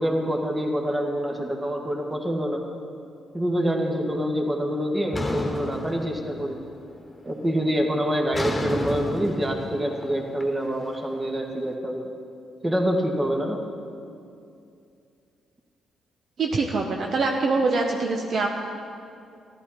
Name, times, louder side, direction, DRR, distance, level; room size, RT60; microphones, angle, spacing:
voice 1, 0.0-2.6 3.3-6.6 7.2-12.1 12.6-13.6, equal, 25° right, 2 dB, 1.8 m, -26 dB
sound 1, 5.1-6.7 7.0-7.5 8.3-11.4, left 1 dB, 25° left, 1.5 m, -32 dB
voice 2, 16.4-18.5, right 3 dB, 60° right, 1 dB, 0.8 m, -24 dB
13.5 x 11.5 x 4.3 m, 2.5 s
hypercardioid pair, 50°, 0 cm